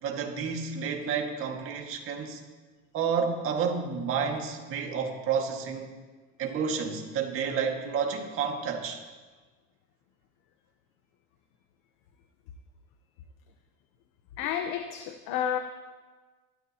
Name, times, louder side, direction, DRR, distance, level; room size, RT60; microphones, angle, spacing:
voice 1, 0.0-2.4 2.9-5.9 6.4-9.0, right 6 dB, 35° right, 2 dB, 2.0 m, -30 dB
voice 2, 14.4-15.6, left 9 dB, 60° left, 6 dB, 1.1 m, -30 dB
27.5 x 13.5 x 3.0 m, 1.3 s
cardioid pair, 160°, 37 cm